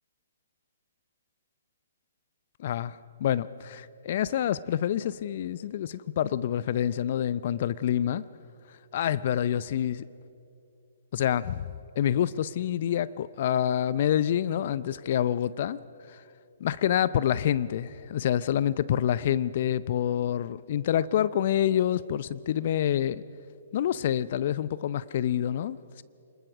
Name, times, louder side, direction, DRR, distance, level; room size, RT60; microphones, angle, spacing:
voice 1, 2.6-8.2 8.9-10.1 11.1-11.6 12.0-15.8 16.1-16.2 16.6-23.2 23.7-26.0, left 10 dB, 50° left, 0.6 m, -27 dB
25.5 x 21.0 x 6.2 m
figure-of-eight pair, 130°, 0 cm